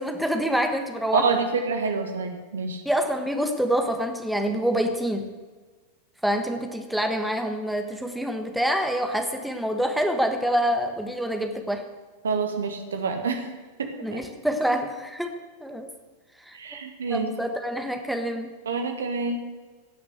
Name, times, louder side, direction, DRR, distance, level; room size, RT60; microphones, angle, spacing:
voice 1, 0.0-1.3 2.8-5.3 6.2-11.9 14.0-15.9 16.4-16.8 17.1-18.6, equal, ahead, 5 dB, 1.4 m, -26 dB
voice 2, 1.1-2.8 12.2-13.4 13.8-14.2 16.5-17.3 18.6-19.4, right 4 dB, 70° right, 6 dB, 1.7 m, -27 dB
16.5 x 6.9 x 8.0 m, 1.4 s
figure-of-eight pair, 90°, 0 cm